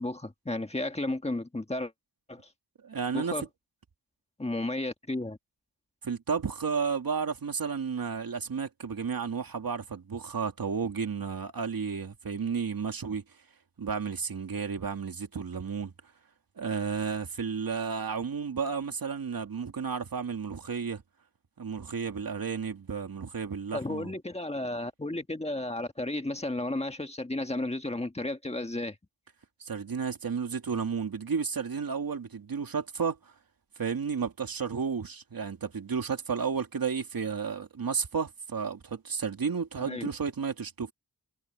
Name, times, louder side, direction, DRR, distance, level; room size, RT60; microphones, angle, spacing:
voice 1, 0.0-1.9 2.3-2.4 3.1-3.4 4.4-5.4 23.7-29.0 39.8-40.1, left 2 dB, 15° left, 1.6 m, -33 dB
voice 2, 2.8-3.4 6.0-13.2 13.8-15.9 16.6-21.0 21.6-24.1 29.6-33.2 33.8-40.9, right 6 dB, 70° right, 2.6 m, -32 dB
wide cardioid pair, 120°, 36 cm